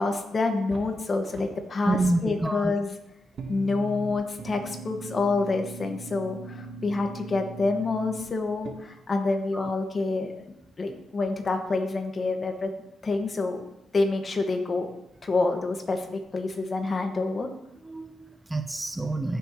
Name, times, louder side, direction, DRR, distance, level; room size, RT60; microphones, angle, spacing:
voice 1, 0.0-2.9 3.5-10.4 10.8-12.7 13.0-13.6 13.9-14.9 15.2-17.5, left 3 dB, 35° left, 4 dB, 1.6 m, -27 dB
sound 1, 0.7-1.7 2.0-2.9 3.3-8.7, right 3 dB, 60° right, 1.3 m, -41 dB
voice 2, 1.8-2.7 9.5-9.7 17.8-19.4, right 2 dB, 15° right, 8 dB, 0.5 m, -28 dB
15.0 x 6.8 x 3.1 m, 0.86 s
cardioid pair, 90°, 0 cm